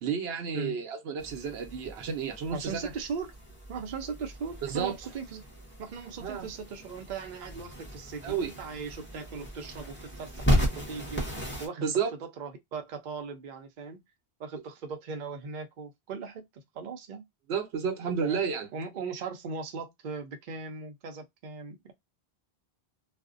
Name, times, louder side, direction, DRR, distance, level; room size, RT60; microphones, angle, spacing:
voice 1, 0.0-2.9 4.6-4.9 6.2-6.5 8.2-8.5 11.8-12.1 17.5-18.7, right 6 dB, 85° right, 0.9 m, -31 dB
sound 1, 1.2-11.7, equal, 10° left, 0.9 m, -35 dB
voice 2, 2.5-3.3 3.7-5.4 5.8-11.3 11.6-11.9 12.4-14.0 14.4-17.3 18.2-18.4 18.7-21.9, right 5 dB, 55° right, 0.6 m, -39 dB
2.5 x 2.1 x 2.4 m
omnidirectional pair, 1.0 m